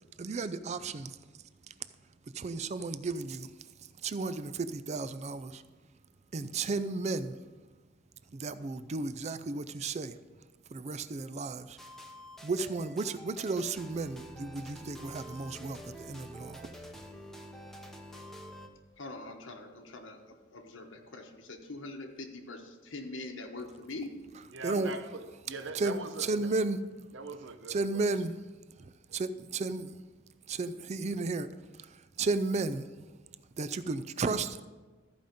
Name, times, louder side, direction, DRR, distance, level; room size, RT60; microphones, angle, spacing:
voice 1, 0.2-1.2 1.7-1.8 2.3-3.5 4.0-5.6 6.3-7.4 8.3-10.1 10.7-11.8 12.4-16.7 24.6-24.9 25.7-26.0 26.3-26.8 27.7-28.3 28.8-30.0 30.5-31.5 31.8-32.9 33.6-34.7, right 3 dB, 35° right, 13 dB, 0.4 m, -33 dB
sound 1, 11.8-18.7, equal, ahead, 0.8 m, -48 dB
voice 2, 19.0-24.1, left 2 dB, 85° left, 2 dB, 1.1 m, -43 dB
voice 3, 24.5-26.6 27.1-28.1 29.1-29.2, right 3 dB, 70° right, 8 dB, 0.7 m, -42 dB
14.0 x 5.1 x 5.2 m, 1.3 s
head